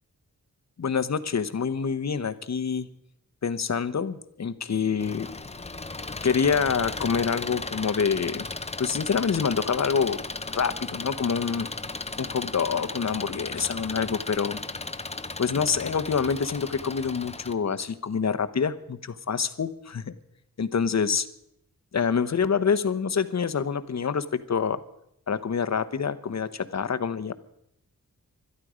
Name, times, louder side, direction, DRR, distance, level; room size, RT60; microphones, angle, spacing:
voice 1, 0.8-2.9 3.4-5.3 6.2-8.4 8.8-10.2 10.5-11.7 12.2-14.6 15.4-20.1 20.6-21.3 21.9-24.8 25.3-27.3, left 6 dB, 50° left, 12 dB, 0.9 m, -26 dB
Engine, 5.0-17.5, left 3 dB, 20° left, 0.7 m, -36 dB
21.5 x 12.5 x 5.0 m, 0.75 s
wide cardioid pair, 125°, 35 cm